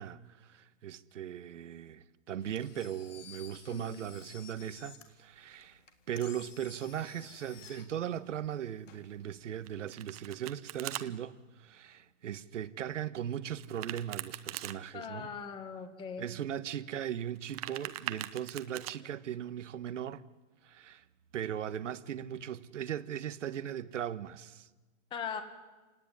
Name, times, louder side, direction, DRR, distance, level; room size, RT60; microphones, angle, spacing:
voice 1, 0.0-5.8 6.1-15.3 16.2-20.2 20.6-21.0 21.3-24.7, right 10 dB, 80° right, 1.5 m, -38 dB
Engine, 2.4-9.7, left 7 dB, 85° left, 3.9 m, -54 dB
voice 2, 3.7-4.0 14.9-16.3 25.1-25.4, left 6 dB, 15° left, 1.7 m, -40 dB
Domestic sounds home sounds, 9.6-11.0 13.6-14.8 17.3-18.9, right 15 dB, 30° right, 1.0 m, -41 dB
29.0 x 18.0 x 9.9 m
hypercardioid pair, 170°, 36 cm